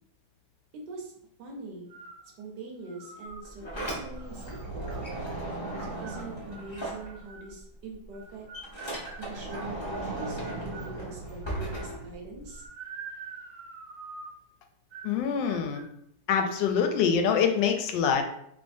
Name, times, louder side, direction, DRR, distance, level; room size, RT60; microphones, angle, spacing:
voice 1, 1.4-1.9 2.4-5.0 5.8-8.5 9.2-12.6, right 2 dB, 70° right, 0 dB, 1.3 m, -43 dB
sound 1, 1.9-2.3 2.8-3.5 4.1-5.1 5.6-7.6 8.1-10.9 11.4-12.0 12.5-14.4 14.9-15.2 15.4-15.9, right 5 dB, 85° right, 1.4 m, -46 dB
Sliding door, 3.3-7.6 7.9-12.6, right 1 dB, 25° left, 0.6 m, -37 dB
voice 2, 15.0-15.8 16.3-18.2, left 7 dB, 80° left, 5 dB, 1.2 m, -25 dB
3.5 x 3.2 x 2.6 m, 0.73 s
omnidirectional pair, 2.0 m